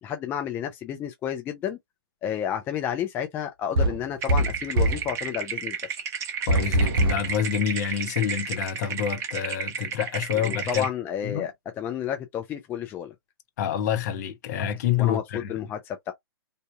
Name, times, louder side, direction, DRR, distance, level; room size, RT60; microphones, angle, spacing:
voice 1, 0.0-1.8 2.2-5.8 10.3-13.1 15.0-16.1, left 9 dB, 15° left, 0.4 m, -31 dB
sound 1, 3.7-5.1 6.5-7.3, right 1 dB, 55° right, 0.8 m, -23 dB
sound 2, 4.2-10.9, right 6 dB, 20° right, 0.7 m, -33 dB
voice 2, 6.5-10.9 11.2-11.5 13.6-15.5, left 9 dB, 40° left, 0.8 m, -27 dB
3.5 x 2.6 x 2.3 m
figure-of-eight pair, 120°, 14 cm